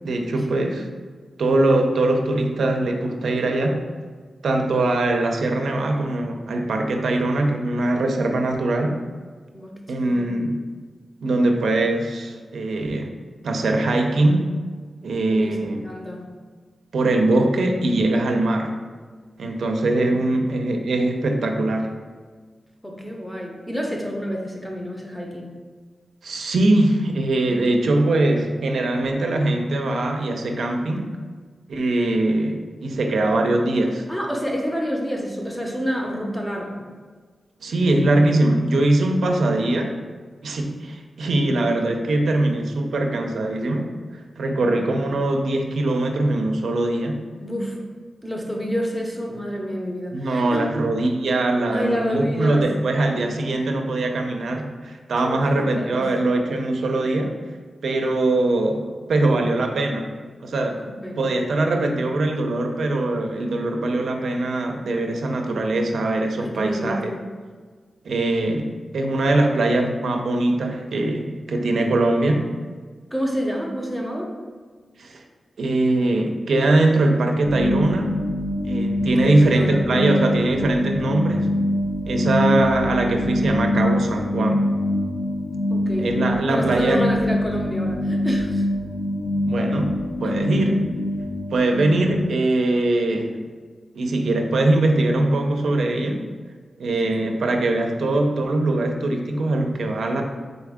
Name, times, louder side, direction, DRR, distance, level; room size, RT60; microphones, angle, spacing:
voice 1, 0.0-0.9 1.4-3.8 4.4-9.0 9.9-10.6 11.2-13.1 13.4-14.5 15.0-15.8 16.9-18.7 19.4-21.9 26.2-31.2 31.7-34.1 37.6-40.0 40.4-43.9 44.4-47.2 50.1-57.4 57.8-60.1 60.4-60.8 61.2-67.1 68.0-72.5 75.0-75.2 75.6-78.1 78.7-81.5 82.1-84.6 86.0-87.0 89.5-90.9 91.5-93.4 93.9-96.2 96.8-100.2, right 2 dB, 90° right, 3 dB, 0.4 m, -22 dB
voice 2, 9.5-10.3 15.3-16.3 20.0-20.4 22.8-25.6 34.1-36.8 44.6-45.0 47.4-47.9 48.2-50.7 51.7-52.7 55.2-56.1 60.8-61.3 66.4-67.3 73.1-74.3 79.0-79.9 85.7-86.1 86.5-88.7 90.2-90.3 96.9-97.5, equal, 5° left, 0 dB, 0.6 m, -29 dB
sound 1, 77.4-92.3, left 1 dB, 90° left, 0.4 m, -24 dB
4.0 x 3.5 x 3.5 m, 1.5 s
wide cardioid pair, 150°, 0 cm